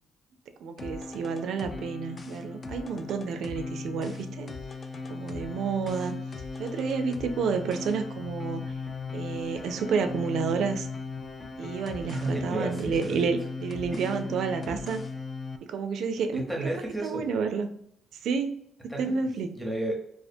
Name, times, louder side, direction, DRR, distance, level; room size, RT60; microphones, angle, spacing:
voice 1, 0.6-4.5 5.1-6.1 6.6-8.6 9.1-10.9 11.6-15.0 15.7-16.4 17.0-17.7 18.2-18.5 19.0-19.5, right 5 dB, 75° right, 7 dB, 0.3 m, -30 dB
sound 1, 0.8-15.6, left 3 dB, 40° left, 0.3 m, -37 dB
voice 2, 12.1-13.3 13.9-14.2 14.7-14.8 16.3-17.2 18.9-19.9, right 2 dB, 5° right, -1 dB, 0.8 m, -33 dB
2.4 x 2.1 x 2.6 m, 0.70 s
cardioid pair, 90°, 0 cm